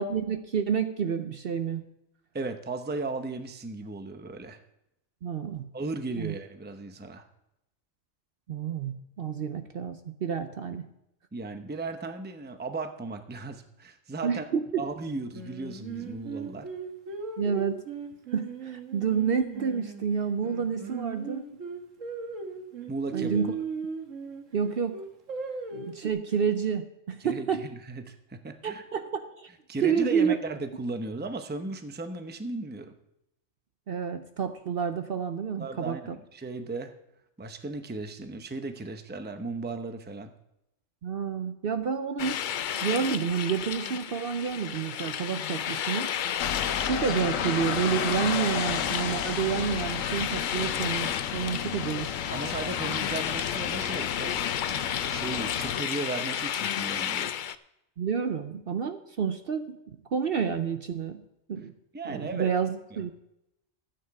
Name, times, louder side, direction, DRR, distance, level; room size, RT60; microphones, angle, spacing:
voice 1, 0.0-1.8 5.2-5.7 6.2-6.3 8.5-10.9 14.2-14.8 17.4-17.8 18.3-21.6 23.1-23.5 24.5-25.0 25.7-27.6 28.6-29.5 29.8-30.4 33.9-36.2 41.0-42.5 42.8-46.1 46.8-52.1 58.0-61.2 61.5-61.7 62.0-63.1, right 7 dB, 55° right, 8 dB, 0.8 m, -29 dB
voice 2, 2.3-4.6 5.7-7.2 11.3-14.5 14.8-16.7 22.9-23.5 27.2-28.8 29.7-32.9 35.6-36.9 37.4-40.3 52.3-54.3 55.1-57.3 61.9-62.5 62.9-63.0, right 3 dB, 10° right, 7 dB, 0.6 m, -36 dB
Singing, 15.3-20.0 20.4-24.4 24.9-26.1, right 5 dB, 75° right, 1.7 m, -37 dB
sound 1, 42.2-57.5, left 9 dB, 65° left, 0.5 m, -33 dB
sound 2, 46.4-55.8, left 8 dB, 85° left, 1.1 m, -32 dB
13.0 x 8.8 x 4.8 m, 0.85 s
omnidirectional pair, 1.3 m